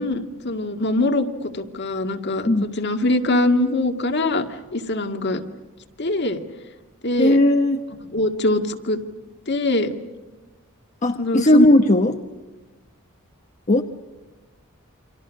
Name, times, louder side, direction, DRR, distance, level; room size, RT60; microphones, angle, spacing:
voice 1, 0.0-4.5 4.7-5.4 6.0-6.4 7.0-7.4 8.1-9.0 9.5-9.9 11.2-11.7, left 2 dB, 55° left, 6 dB, 2.0 m, -22 dB
voice 2, 7.2-7.8 11.0-12.1 13.7-13.8, left 1 dB, 35° left, 5 dB, 1.1 m, -16 dB
29.5 x 26.0 x 6.4 m, 1.1 s
head